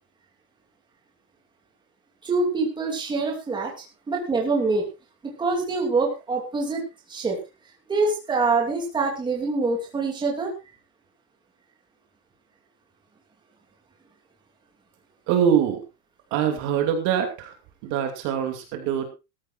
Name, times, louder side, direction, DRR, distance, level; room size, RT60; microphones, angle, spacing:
voice 1, 2.2-3.7 4.1-4.9 5.2-6.8 7.1-7.4 7.9-10.5, right 3 dB, 10° right, -1 dB, 2.8 m, -25 dB
voice 2, 15.3-15.9 16.3-17.5 17.8-19.0, right 8 dB, 35° right, 5 dB, 2.6 m, -23 dB
19.0 x 14.0 x 2.5 m, 0.27 s
supercardioid pair, 180°, 48 cm